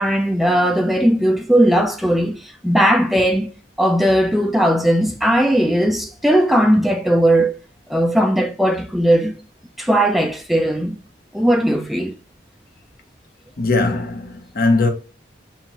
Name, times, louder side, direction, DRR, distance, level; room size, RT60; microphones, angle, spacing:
voice 1, 0.0-2.3 2.6-3.5 3.8-7.5 7.9-9.3 9.8-11.0 11.3-12.1, right 1 dB, ahead, 0.3 m, -17 dB
voice 2, 13.6-14.9, left 3 dB, 50° left, 0.8 m, -19 dB
5.6 x 2.4 x 2.9 m
head